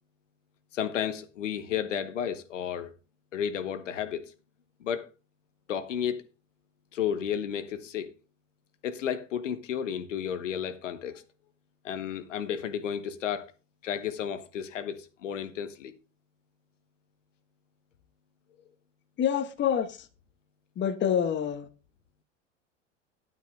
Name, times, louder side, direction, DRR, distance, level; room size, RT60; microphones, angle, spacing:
voice 1, 0.7-2.9 3.3-4.3 4.8-5.1 5.7-6.2 6.9-8.1 8.8-11.2 11.8-13.5 13.8-15.9, left 8 dB, 80° left, 1.2 m, -32 dB
voice 2, 19.2-20.0 20.8-21.7, left 8 dB, 30° left, 1.2 m, -27 dB
11.0 x 9.4 x 3.4 m
hypercardioid pair, 90°, 37 cm